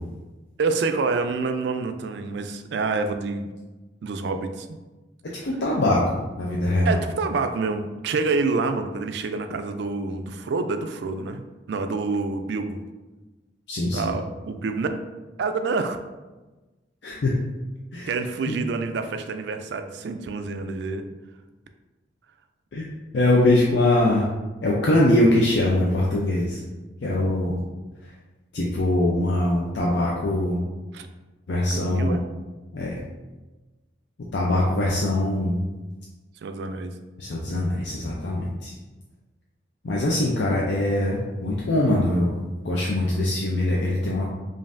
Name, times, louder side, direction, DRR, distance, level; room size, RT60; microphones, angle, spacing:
voice 1, 0.6-3.5 4.0-4.8 6.8-12.8 13.9-14.9 15.4-16.0 18.1-21.1 30.9-31.1 31.7-32.2 36.4-36.9, right 4 dB, 65° right, 8 dB, 0.3 m, -27 dB
voice 2, 5.4-7.0 13.7-14.1 17.0-17.3 17.9-18.1 18.5-18.6 22.7-22.9 23.1-24.3 24.6-26.6 27.0-27.6 28.0-28.1 28.5-30.6 31.5-32.2 32.7-33.0 34.3-35.6 37.2-38.7 39.8-42.4 42.6-44.3, left 1 dB, 65° left, -3 dB, 0.5 m, -22 dB
5.2 x 2.6 x 2.5 m, 1.2 s
head